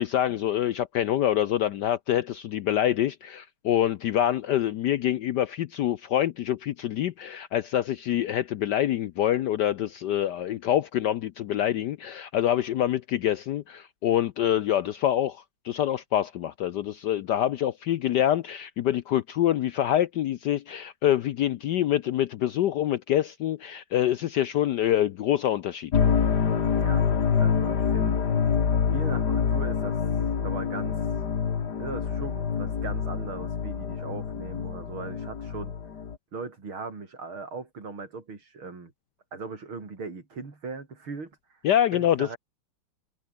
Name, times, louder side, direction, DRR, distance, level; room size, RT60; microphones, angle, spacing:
voice 1, 0.0-25.9 41.6-42.3, left 11 dB, 70° left, 1.1 m, -26 dB
sound 1, 25.9-36.2, left 6 dB, 50° left, 2.3 m, -26 dB
voice 2, 26.7-27.1 27.4-28.2 28.9-30.0 30.4-31.1 31.8-35.7 36.3-38.9 39.3-41.4 41.9-42.4, right 4 dB, 70° right, 5.0 m, -39 dB
omnidirectional pair, 2.4 m